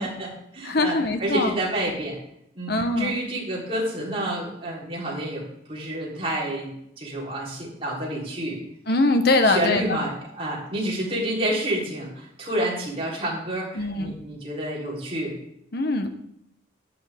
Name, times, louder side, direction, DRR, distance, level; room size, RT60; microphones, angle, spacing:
voice 1, 0.0-2.2 2.5-8.6 9.4-15.3, right 1 dB, 30° right, -5 dB, 3.7 m, -29 dB
voice 2, 0.6-1.5 2.7-3.1 8.9-10.0 13.8-14.2 15.7-16.1, left 2 dB, 55° left, 7 dB, 1.1 m, -22 dB
11.5 x 9.1 x 3.6 m, 0.77 s
head